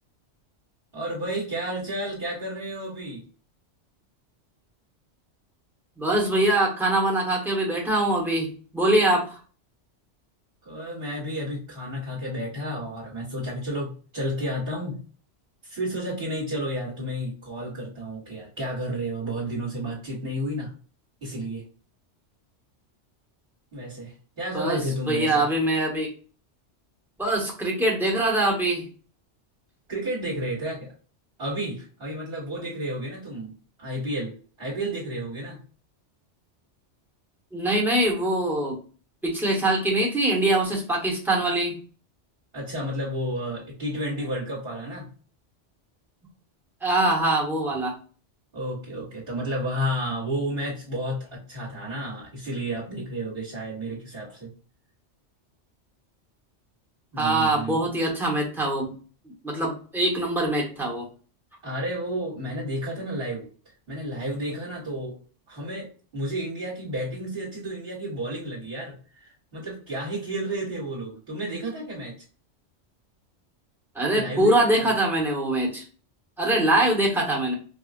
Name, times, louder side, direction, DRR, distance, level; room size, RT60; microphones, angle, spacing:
voice 1, 0.9-3.2 10.6-15.0 15.6-20.7 21.2-21.6 23.7-25.5 29.9-30.9 31.4-33.5 33.8-35.6 42.5-45.1 48.5-54.5 57.1-57.9 61.6-63.5 63.9-65.2 65.5-68.9 69.2-72.2 74.1-74.9, right 1 dB, 50° right, -7 dB, 1.8 m, -31 dB
voice 2, 6.0-9.4 24.5-24.8 25.1-26.1 27.2-28.8 37.5-38.8 39.2-41.7 46.8-47.9 57.2-58.9 59.4-61.1 73.9-75.8 76.4-77.5, right 1 dB, ahead, -3 dB, 1.1 m, -23 dB
5.0 x 2.3 x 2.5 m, 0.39 s
omnidirectional pair, 1.2 m